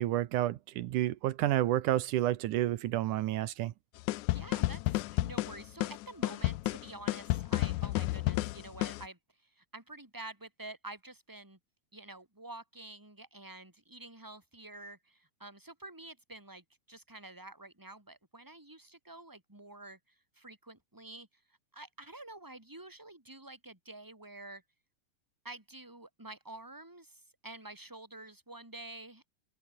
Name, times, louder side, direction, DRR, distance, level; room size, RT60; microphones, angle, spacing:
voice 1, 0.0-3.7, right 14 dB, 75° right, 2.3 m, -30 dB
sound 1, 4.1-9.1, left 18 dB, 75° left, 1.9 m, -31 dB
voice 2, 4.3-11.6 11.9-21.3 21.7-24.6 25.4-29.3, right 2 dB, 5° right, 4.7 m, -49 dB
open air
omnidirectional pair, 3.8 m